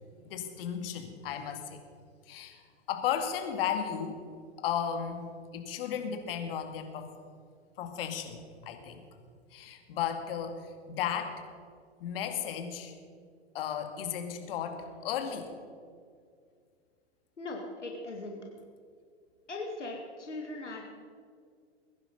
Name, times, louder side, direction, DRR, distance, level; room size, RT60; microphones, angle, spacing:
voice 1, 0.2-1.8 2.3-2.6 2.9-4.2 4.6-5.3 5.5-7.1 7.8-9.0 9.5-10.6 10.9-11.4 12.0-12.9 13.5-15.5, left 8 dB, 55° left, 6 dB, 2.4 m, -34 dB
voice 2, 17.4-18.4 19.5-21.0, left 2 dB, 90° left, 1 dB, 2.4 m, -39 dB
21.5 x 10.5 x 5.5 m, 2.1 s
hypercardioid pair, 110°, 35 cm